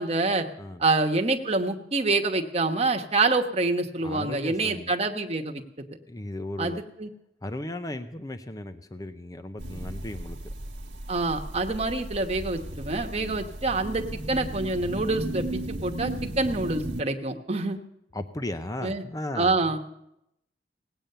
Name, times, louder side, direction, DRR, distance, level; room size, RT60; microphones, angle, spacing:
voice 1, 0.0-0.5 0.8-5.6 6.6-7.1 11.1-17.8 18.8-19.0 19.4-19.8, right 3 dB, 35° right, 3 dB, 1.2 m, -26 dB
voice 2, 4.0-4.9 6.1-6.8 7.4-10.4 13.1-13.4 18.1-19.8, left 1 dB, 20° left, 9 dB, 0.6 m, -36 dB
sound 1, 9.6-17.0, right 1 dB, 70° right, 1.3 m, -35 dB
18.0 x 8.9 x 6.7 m, 0.81 s
head